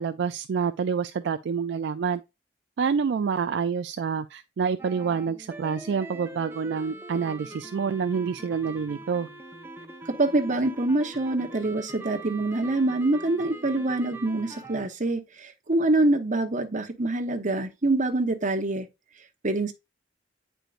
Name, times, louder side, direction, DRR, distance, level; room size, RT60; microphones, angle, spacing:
voice 1, 0.0-2.2 2.8-9.3, right 6 dB, 65° right, 0.3 m, -27 dB
sound 1, 4.8-14.9, right 2 dB, 10° right, 0.8 m, -42 dB
voice 2, 10.1-18.9 19.4-19.7, right 2 dB, 40° right, 1.0 m, -25 dB
9.0 x 4.5 x 2.5 m
head